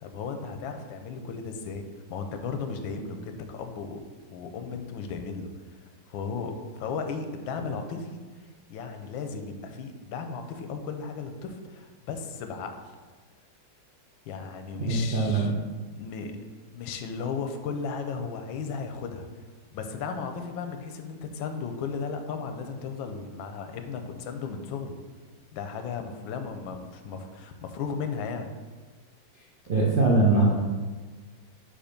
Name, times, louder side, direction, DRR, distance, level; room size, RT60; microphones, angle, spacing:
voice 1, 0.0-4.0 4.3-5.5 6.1-8.2 8.7-12.7 14.3-15.5 16.0-16.3 16.7-19.3 19.7-25.0 25.5-28.5, left 5 dB, 85° left, 6 dB, 1.4 m, -35 dB
voice 2, 14.9-15.5 29.7-30.5, right 3 dB, 55° right, -5 dB, 0.5 m, -21 dB
5.1 x 4.7 x 5.1 m, 1.4 s
omnidirectional pair, 2.1 m